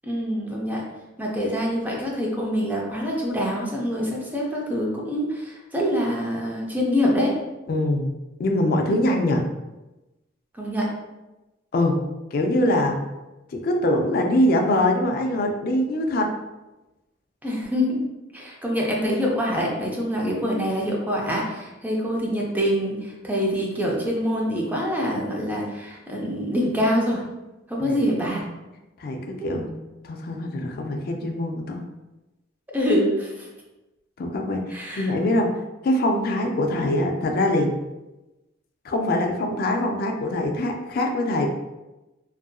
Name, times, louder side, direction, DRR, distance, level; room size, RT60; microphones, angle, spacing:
voice 1, 0.0-0.9 1.2-7.4 10.5-10.9 17.4-18.0 18.3-27.2 27.7-28.4 32.7-33.5 34.7-35.1, equal, 10° right, -3 dB, 0.5 m, -25 dB
voice 2, 7.7-8.1 8.4-9.4 11.7-12.0 12.3-13.0 13.5-16.3 27.8-28.0 29.0-29.7 30.0-31.8 34.2-37.7 38.8-41.5, left 1 dB, 55° left, 3 dB, 0.3 m, -23 dB
2.7 x 2.5 x 2.2 m, 1.0 s
head